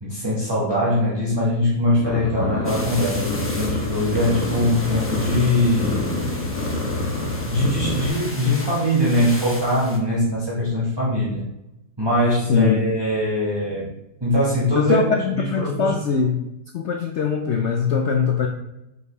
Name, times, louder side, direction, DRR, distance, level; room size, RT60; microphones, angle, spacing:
voice 1, 0.0-6.2 7.5-11.5 12.0-13.9 14.2-16.0, left 1 dB, 15° right, -7 dB, 1.2 m, -22 dB
sound 1, 2.0-8.1, left 2 dB, 50° left, 1.4 m, -26 dB
sound 2, 2.6-10.0, left 1 dB, 20° left, 0.3 m, -36 dB
voice 2, 14.8-16.4 16.7-18.5, left 6 dB, 70° left, 3 dB, 0.7 m, -21 dB
6.0 x 5.5 x 3.1 m, 0.88 s
omnidirectional pair, 1.8 m